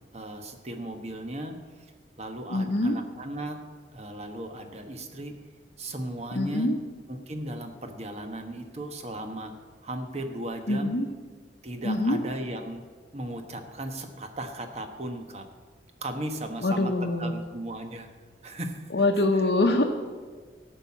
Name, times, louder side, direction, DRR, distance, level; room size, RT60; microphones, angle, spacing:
voice 1, 0.1-1.9 2.2-3.6 3.9-5.3 5.8-6.7 7.1-9.5 9.8-10.9 11.6-12.8 13.1-15.5 16.0-18.1 18.4-19.1 19.3-19.5, right 1 dB, 35° right, 6 dB, 1.1 m, -36 dB
voice 2, 2.5-3.0 6.4-6.8 10.7-11.1 11.8-12.2 16.6-17.3 18.9-19.8, left 2 dB, 65° left, 0 dB, 0.9 m, -24 dB
14.0 x 5.7 x 8.4 m, 1.5 s
head